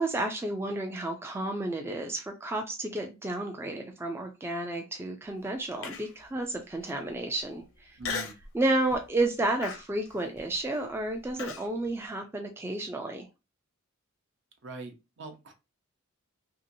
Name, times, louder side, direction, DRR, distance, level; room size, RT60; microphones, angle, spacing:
voice 1, 0.0-8.0 8.5-13.3, right 2 dB, 10° right, 4 dB, 0.3 m, -31 dB
Human voice, 5.8-6.3 6.8-6.9 8.0-8.5 8.9-9.2 9.6-11.7, left 5 dB, 70° left, 0.6 m, -37 dB
voice 2, 8.0-8.3 14.6-15.5, right 4 dB, 55° right, 5 dB, 0.7 m, -42 dB
2.9 x 2.7 x 2.5 m, 0.27 s
head